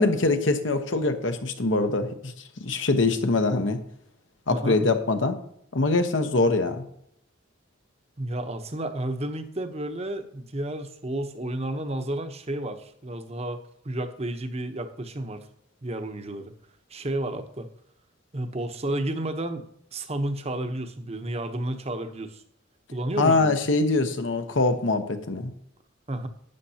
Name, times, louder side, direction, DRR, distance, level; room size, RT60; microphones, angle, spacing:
voice 1, 0.0-2.3 2.6-3.8 4.5-5.4 5.7-6.8 23.2-25.5, left 3 dB, 70° left, 7 dB, 1.0 m, -23 dB
voice 2, 4.5-4.8 8.2-15.4 15.8-16.5 16.9-17.7 18.3-19.7 19.9-22.4 22.9-23.6 26.1-26.3, right 1 dB, 30° right, 8 dB, 0.9 m, -31 dB
12.0 x 9.1 x 2.8 m, 0.71 s
head